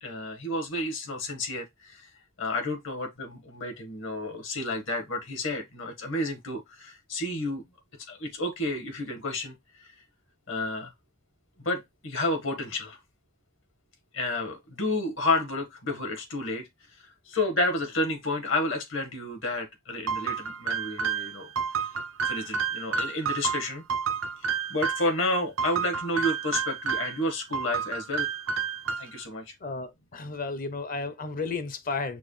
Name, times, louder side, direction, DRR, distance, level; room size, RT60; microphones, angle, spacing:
voice 1, 0.0-2.1 2.4-7.6 8.1-9.9 10.5-10.9 11.6-13.0 14.1-17.0 17.3-21.5 21.8-21.9 22.3-23.8 24.7-28.3 29.0-29.5, left 2 dB, 65° left, 1.4 m, -31 dB
sound 1, 20.1-25.1 25.6-27.2 27.5-29.3, right 6 dB, 75° right, 0.5 m, -30 dB
voice 2, 29.6-32.2, left 3 dB, 45° left, 0.6 m, -33 dB
6.1 x 2.2 x 3.1 m
head